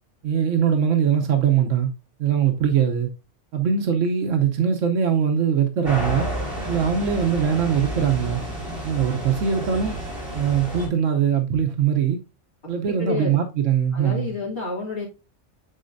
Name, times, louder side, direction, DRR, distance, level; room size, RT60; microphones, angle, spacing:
voice 1, 0.2-1.9 2.2-3.1 3.5-6.3 6.7-8.4 8.8-9.9 10.3-12.2 12.7-14.3, right 8 dB, 85° right, 1.2 m, -21 dB
sound 1, 5.8-10.9, right 1 dB, 50° right, 4.4 m, -30 dB
voice 2, 12.9-13.4 13.9-15.0, left 3 dB, 50° left, 2.7 m, -29 dB
10.5 x 4.2 x 2.6 m
omnidirectional pair, 1.3 m